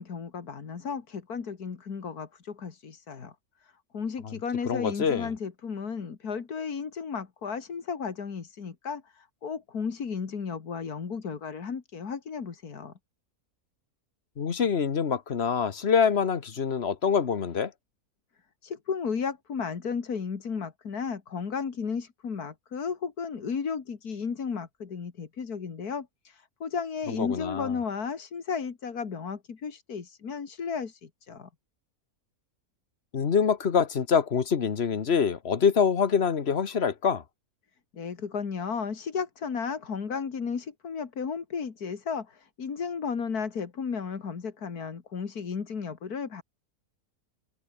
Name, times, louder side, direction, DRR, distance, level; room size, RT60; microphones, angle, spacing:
voice 1, 0.0-3.3 3.6-12.9 18.6-31.5 37.9-46.4, left 6 dB, 85° left, 2.5 m, -34 dB
voice 2, 4.6-5.3 14.4-17.7 27.1-27.7 33.1-37.2, left 6 dB, 45° left, 1.4 m, -25 dB
omnidirectional pair, 1.6 m